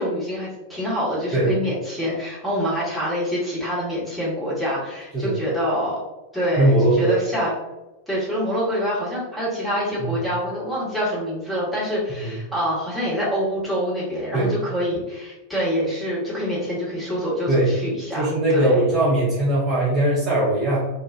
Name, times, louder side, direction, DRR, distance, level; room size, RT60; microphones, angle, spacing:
voice 1, 0.0-6.0 6.3-7.5 8.1-18.3 18.5-18.8, equal, ahead, -8 dB, 1.1 m, -26 dB
voice 2, 6.6-7.2 10.0-10.1 12.2-12.3 14.3-14.5 17.5-17.7 18.2-20.9, right 1 dB, 25° right, -7 dB, 0.8 m, -20 dB
2.5 x 2.3 x 2.4 m, 1.0 s
figure-of-eight pair, 90°, 0 cm